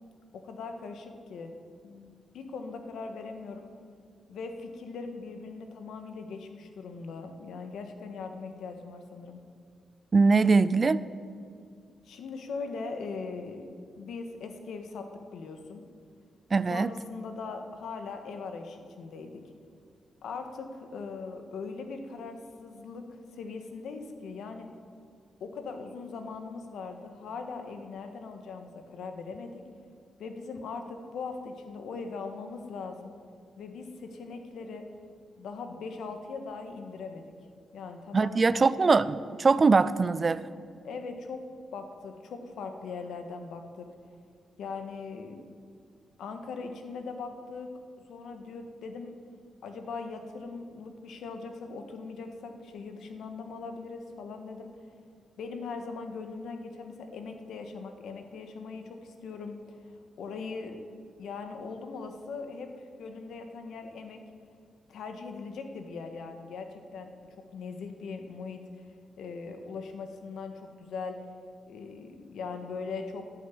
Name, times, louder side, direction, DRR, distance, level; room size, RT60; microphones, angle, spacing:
voice 1, 0.3-1.5 1.8-3.7 4.3-9.4 12.0-13.7 14.0-15.8 16.7-19.4 20.2-24.7 25.4-29.6 30.2-33.1 33.6-34.8 35.4-37.3 37.7-38.9 40.8-41.4 41.7-43.9 44.6-45.4 46.2-47.7 48.1-49.2 49.6-54.7 55.4-59.6 60.2-60.8 61.2-62.7 63.0-64.2 64.9-67.1 67.4-68.6 69.2-71.2 71.7-73.2, left 4 dB, 85° left, 6 dB, 1.5 m, -40 dB
voice 2, 10.1-11.0 16.5-16.9 38.1-40.5, right 4 dB, 25° right, 16 dB, 0.3 m, -22 dB
11.0 x 9.2 x 9.6 m, 2.2 s
wide cardioid pair, 165°, 0 cm